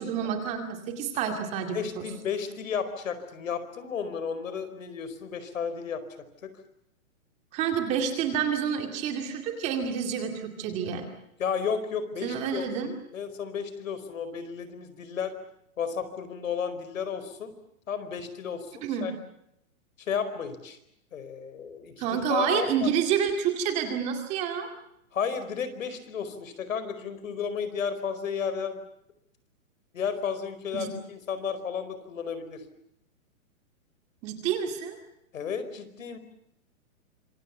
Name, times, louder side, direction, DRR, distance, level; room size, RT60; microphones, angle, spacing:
voice 1, 0.0-2.1 7.5-11.1 12.2-12.9 18.8-19.1 22.0-24.7 30.7-30.9 34.2-35.0, right 7 dB, 15° right, 5 dB, 2.3 m, -29 dB
voice 2, 1.7-6.0 6.4-6.5 11.4-15.3 15.8-17.5 17.9-19.1 20.0-20.8 21.1-22.9 25.1-28.8 29.9-32.6 35.3-36.2, left 6 dB, 70° left, 11 dB, 4.8 m, -33 dB
26.5 x 24.5 x 7.1 m, 0.77 s
hypercardioid pair, 175°, 41 cm